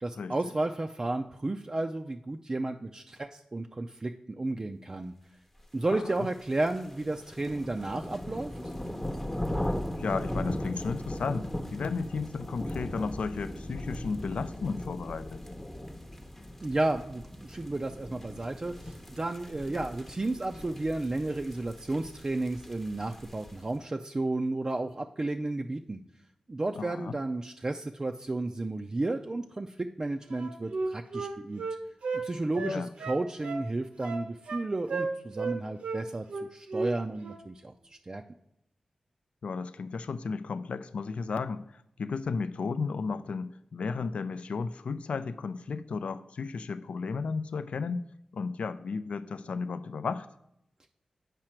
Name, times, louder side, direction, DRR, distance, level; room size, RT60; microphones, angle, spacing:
voice 1, 0.0-5.1 5.7-8.5 16.6-26.0 26.5-31.6 32.2-36.3 36.5-38.2, right 2 dB, 30° right, 4 dB, 0.4 m, -32 dB
voice 2, 5.9-6.3 9.7-15.4 26.8-27.2 32.6-32.9 39.4-48.0 48.3-50.3, left 4 dB, 75° left, 14 dB, 0.3 m, -34 dB
sound 1, 6.2-23.7, left 1 dB, 15° left, 0.8 m, -38 dB
Wind instrument woodwind instrument, 30.3-32.2 32.5-33.7 34.0-34.6 34.9-35.6 35.8-36.0 36.3-36.9 37.2-37.4, right 3 dB, 85° right, 0.9 m, -33 dB
7.5 x 4.9 x 4.4 m, 0.78 s
cardioid pair, 55°, 2 cm